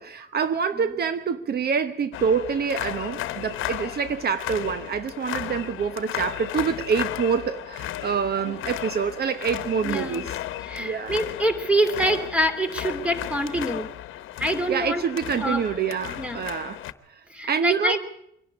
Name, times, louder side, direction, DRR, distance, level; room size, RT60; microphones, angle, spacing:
voice 1, 0.0-10.3 10.8-11.2 14.7-18.0, right 6 dB, 55° right, 1.0 m, -26 dB
sound 1, 2.1-16.9, left 13 dB, 85° left, 1.0 m, -34 dB
voice 2, 9.8-10.3 10.6-13.9 14.4-15.0 15.4-15.6 16.2-16.4 17.3-18.0, right 1 dB, 5° right, 2.8 m, -25 dB
24.5 x 11.5 x 9.6 m
cardioid pair, 90°, 20 cm